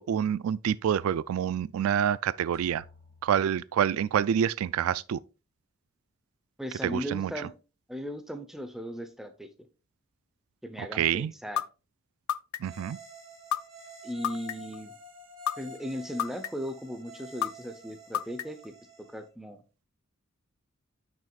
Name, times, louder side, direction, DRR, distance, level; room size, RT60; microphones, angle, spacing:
voice 1, 0.0-2.8 3.2-5.2 6.8-7.3 10.8-11.3 12.6-13.0, right 9 dB, 85° right, 0.3 m, -27 dB
sound 1, 2.5-4.4, left 3 dB, 35° right, 2.9 m, -58 dB
voice 2, 6.6-7.5 7.9-9.7 10.6-11.6 14.0-14.9 15.6-19.6, equal, ahead, 0.7 m, -37 dB
sound 2, 11.6-11.7 12.3-12.8 13.5-13.6 14.2-14.8 15.5-15.6 16.2-16.7 17.4-17.5 18.1-18.7, left 10 dB, 80° left, 0.4 m, -28 dB
sound 3, 12.6-19.3, right 1 dB, 65° right, 3.3 m, -49 dB
9.0 x 6.1 x 2.4 m
head